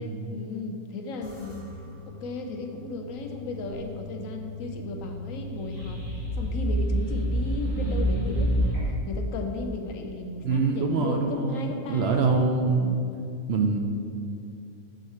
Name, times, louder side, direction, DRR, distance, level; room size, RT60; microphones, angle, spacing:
voice 1, 0.0-1.6 2.1-6.0 6.4-8.8 9.1-12.4, left 3 dB, 85° left, 4 dB, 1.1 m, -35 dB
sound 1, 1.2-11.8, equal, 35° left, 1.8 m, -43 dB
sound 2, 5.4-9.1, equal, 90° right, 2.2 m, -27 dB
voice 2, 10.4-13.0 13.5-13.8, right 4 dB, 65° right, 3 dB, 0.7 m, -24 dB
6.6 x 4.8 x 4.2 m, 2.5 s
omnidirectional pair, 1.4 m